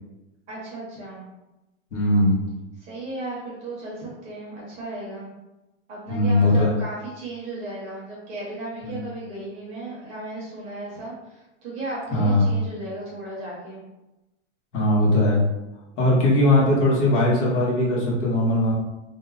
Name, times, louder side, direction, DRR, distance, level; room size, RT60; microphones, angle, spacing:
voice 1, 0.5-1.2 2.8-5.3 5.9-13.8, right 2 dB, 20° right, -7 dB, 0.7 m, -35 dB
voice 2, 1.9-2.4 6.1-6.7 8.8-8.9 12.1-12.5 14.7-15.4 16.0-18.7, left 1 dB, 80° left, -4 dB, 1.4 m, -19 dB
2.9 x 2.1 x 3.8 m, 0.98 s
supercardioid pair, 175°, 36 cm